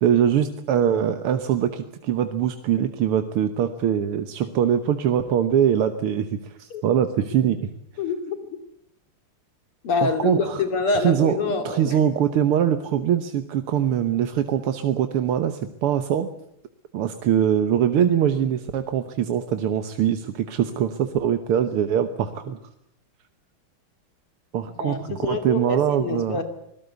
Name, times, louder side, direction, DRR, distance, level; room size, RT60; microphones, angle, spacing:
voice 1, 0.0-6.3 6.6-7.6 10.0-10.6 10.9-16.3 16.9-22.6 24.5-26.4, right 9 dB, 85° right, 8 dB, 2.0 m, -22 dB
voice 2, 8.0-8.4 9.8-11.9 24.8-26.4, left 4 dB, 90° left, 7 dB, 3.6 m, -26 dB
25.0 x 18.5 x 8.1 m, 0.74 s
omnidirectional pair, 2.4 m